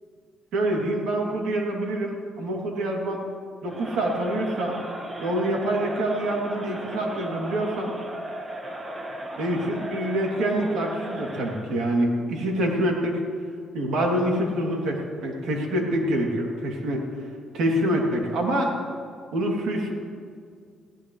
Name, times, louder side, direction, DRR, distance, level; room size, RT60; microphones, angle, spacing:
voice 1, 0.5-3.2 3.6-4.8 5.2-7.9 9.4-13.2 13.7-17.0 17.5-18.8 19.3-19.9, right 1 dB, 75° right, 0 dB, 3.0 m, -26 dB
Crowd, 3.6-11.7, right 1 dB, 30° right, 1.6 m, -36 dB
19.5 x 17.0 x 3.3 m, 2.2 s
cardioid pair, 105°, 0 cm